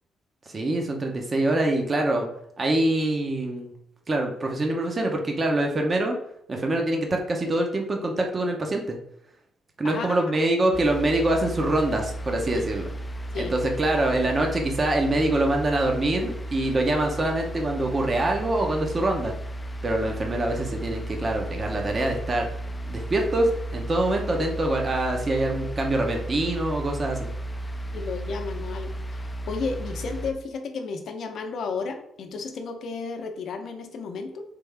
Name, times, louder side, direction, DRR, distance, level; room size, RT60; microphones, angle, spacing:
voice 1, 0.5-2.3 2.6-3.7 4.1-6.2 6.5-9.0 9.8-12.9 13.3-19.3 19.8-22.5 22.9-27.3, right 1 dB, 35° right, 2 dB, 0.7 m, -25 dB
voice 2, 9.8-10.2 12.5-12.6 13.3-13.5 27.9-34.4, left 4 dB, 65° left, 5 dB, 0.6 m, -33 dB
sound 1, 10.7-30.3, right 1 dB, 15° left, 0.4 m, -34 dB
3.4 x 3.4 x 3.4 m, 0.72 s
cardioid pair, 90°, 0 cm